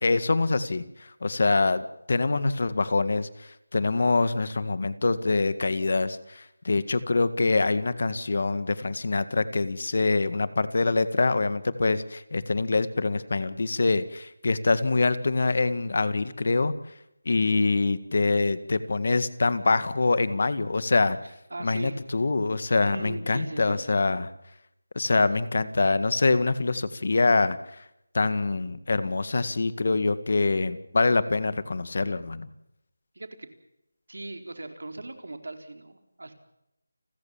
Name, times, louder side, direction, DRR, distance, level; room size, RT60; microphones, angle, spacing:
voice 1, 0.0-16.7 17.3-21.2 21.6-24.3 25.0-27.8 28.1-32.5, left 3 dB, 50° left, 14 dB, 1.8 m, -25 dB
voice 2, 21.2-22.0 22.8-23.9 33.1-33.5 34.1-36.3, right 2 dB, 75° right, 7 dB, 4.3 m, -39 dB
29.5 x 14.5 x 7.3 m, 0.82 s
figure-of-eight pair, 175°, 0 cm